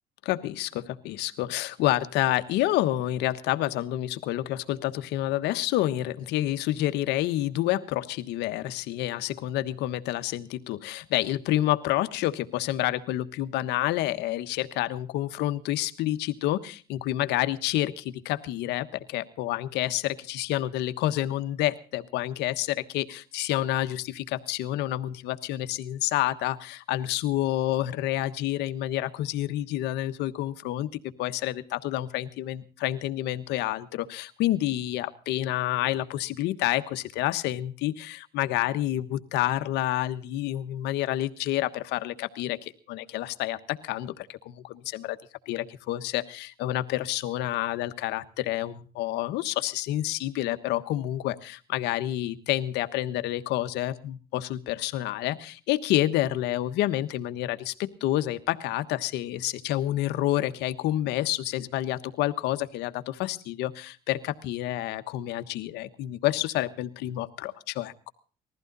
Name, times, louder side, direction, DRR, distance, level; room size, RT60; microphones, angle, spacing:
voice 1, 0.2-30.9 31.2-45.2 45.5-68.1, left 14 dB, 85° left, 10 dB, 1.3 m, -29 dB
20.5 x 15.0 x 4.0 m, 0.38 s
cardioid pair, 110°, 17 cm